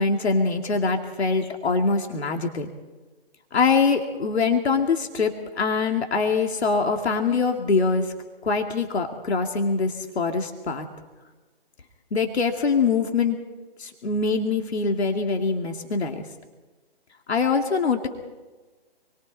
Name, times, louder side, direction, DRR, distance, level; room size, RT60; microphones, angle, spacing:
voice 1, 0.0-2.7 3.5-8.1 8.4-10.9 12.1-13.4 13.8-16.3 17.3-18.1, left 4 dB, 80° left, 3 dB, 2.7 m, -23 dB
28.5 x 22.5 x 4.2 m, 1.2 s
hypercardioid pair, 160°, 32 cm